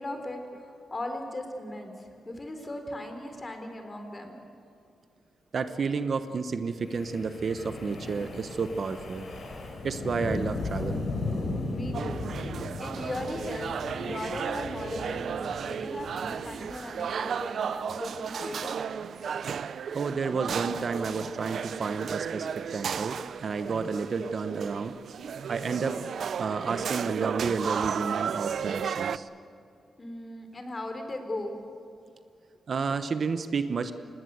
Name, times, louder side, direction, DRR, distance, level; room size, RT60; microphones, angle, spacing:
voice 1, 0.0-4.4 11.7-12.3 12.8-15.4 15.6-18.7 30.0-31.6, left 1 dB, 25° left, 5 dB, 3.7 m, -38 dB
voice 2, 5.5-9.3 9.8-11.0 19.9-25.0 25.5-26.0 26.4-29.3 32.7-33.9, right 5 dB, 50° right, 9 dB, 1.0 m, -31 dB
Wind, 6.8-17.1, left 2 dB, 60° left, 4.9 m, -36 dB
sound 1, 11.9-29.2, right 7 dB, 65° right, 0.6 m, -34 dB
26.5 x 19.5 x 8.1 m, 2.5 s
cardioid pair, 115°, 0 cm